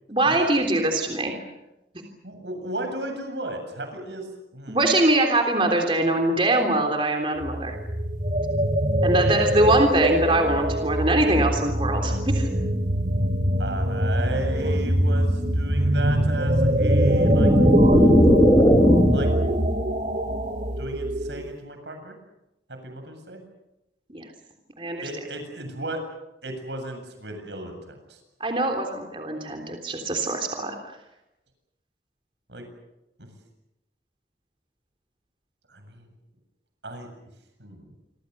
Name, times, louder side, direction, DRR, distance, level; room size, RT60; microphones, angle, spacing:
voice 1, 0.1-1.4 4.7-7.8 9.0-12.5 24.1-24.3 24.8-25.1 28.4-30.8, right 1 dB, 30° right, 3 dB, 3.5 m, -23 dB
voice 2, 2.2-4.3 4.5-4.8 13.6-17.5 17.8-18.2 19.1-19.3 20.8-22.2 22.7-23.4 25.0-26.0 26.4-28.2 32.5-32.6 33.2-33.3 35.7-36.1 36.8-37.1 37.6-37.9, right 1 dB, 85° right, 6 dB, 7.7 m, -35 dB
sound 1, 7.4-21.6, right 1 dB, 45° right, 2.2 m, -23 dB
sound 2, 16.9-19.4, left 1 dB, 20° left, 0.9 m, -18 dB
28.0 x 25.0 x 6.8 m, 0.92 s
head